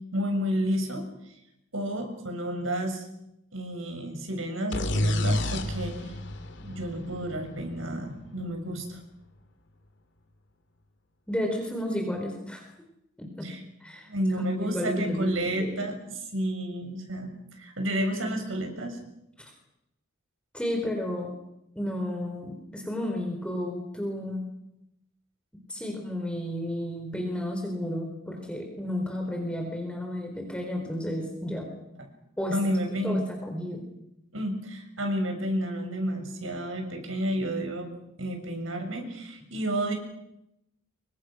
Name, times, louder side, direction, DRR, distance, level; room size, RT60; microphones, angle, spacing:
voice 1, 0.1-1.1 1.7-3.0 3.5-6.0 6.6-9.0 13.4-13.6 14.1-15.9 16.3-17.3 17.6-19.0 32.5-33.3 34.3-37.9 38.2-39.9, equal, 80° right, 4 dB, 6.9 m, -30 dB
sound 1, 4.7-8.4, left 1 dB, 60° left, 2.9 m, -30 dB
voice 2, 11.3-12.6 13.2-14.1 14.6-15.9 19.4-19.5 20.5-21.3 21.7-24.5 25.7-31.7 32.4-32.6 33.0-33.8, left 1 dB, 5° left, 2 dB, 4.4 m, -32 dB
28.5 x 24.5 x 6.4 m, 0.83 s
head